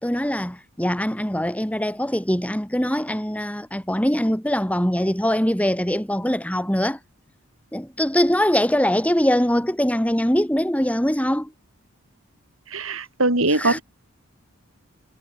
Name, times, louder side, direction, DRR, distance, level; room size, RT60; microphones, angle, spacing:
voice 1, 0.0-7.0 7.7-11.5 13.5-13.8, equal, 5° left, 4.2 m, -22 dB
voice 2, 12.7-13.8, right 2 dB, 75° right, 6.7 m, -21 dB
head